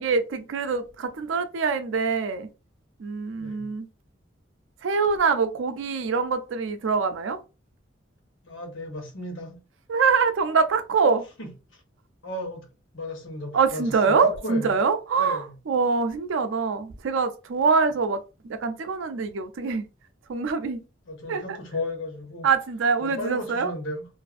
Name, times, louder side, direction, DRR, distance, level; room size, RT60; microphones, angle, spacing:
voice 1, 0.0-2.5 3.0-3.9 4.8-7.4 9.9-11.2 13.5-19.9 20.3-20.8 21.3-21.4 22.4-23.7, right 5 dB, 75° right, 0.4 m, -24 dB
voice 2, 3.3-3.7 8.4-9.6 11.4-11.5 12.2-12.6 12.9-14.8 15.2-15.5 21.1-22.5 23.0-24.1, left 1 dB, 85° left, 1.0 m, -34 dB
2.5 x 2.4 x 2.4 m
head